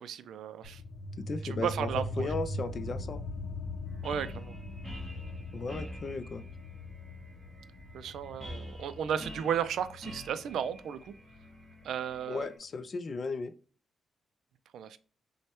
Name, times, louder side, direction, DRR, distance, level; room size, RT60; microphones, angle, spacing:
voice 1, 0.0-0.8 1.6-2.3 4.0-4.6 7.9-11.0 11.8-12.5 14.7-15.0, right 8 dB, 75° right, 13 dB, 0.3 m, -34 dB
sound 1, 0.6-11.7, left 1 dB, 90° left, 0.6 m, -41 dB
voice 2, 1.3-3.2 5.5-6.4 12.3-13.5, left 3 dB, 35° left, 12 dB, 0.3 m, -36 dB
sound 2, 3.9-12.6, equal, 10° right, 1.0 m, -47 dB
6.3 x 2.1 x 2.9 m, 0.41 s
wide cardioid pair, 170°, 0 cm